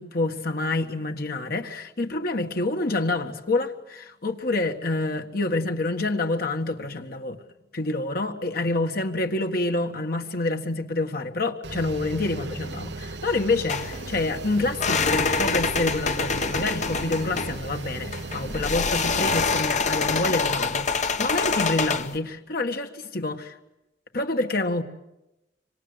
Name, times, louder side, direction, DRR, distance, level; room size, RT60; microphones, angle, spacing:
voice 1, 0.0-7.4 7.7-23.5 24.1-24.8, left 2 dB, 60° left, 1.8 m, -27 dB
sound 1, 11.6-19.6, right 2 dB, 85° right, 0.9 m, -37 dB
sound 2, 13.7-22.2, left 4 dB, 45° left, 1.1 m, -26 dB
26.0 x 25.5 x 8.1 m
head